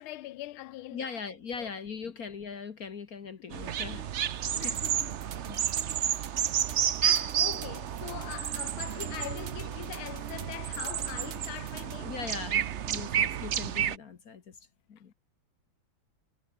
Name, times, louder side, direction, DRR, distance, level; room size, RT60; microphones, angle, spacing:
voice 1, 0.0-1.1 1.6-1.7 4.6-5.2 6.3-6.6 7.0-12.1, left 15 dB, 90° left, 1.6 m, -42 dB
voice 2, 0.9-4.8 5.5-5.6 12.0-14.6 14.9-15.1, left 5 dB, 50° left, 1.7 m, -40 dB
sound 1, 3.5-14.0, right 9 dB, 70° right, 0.6 m, -31 dB
sound 2, 4.6-12.0, right 8 dB, 85° right, 2.5 m, -47 dB
omnidirectional pair, 2.2 m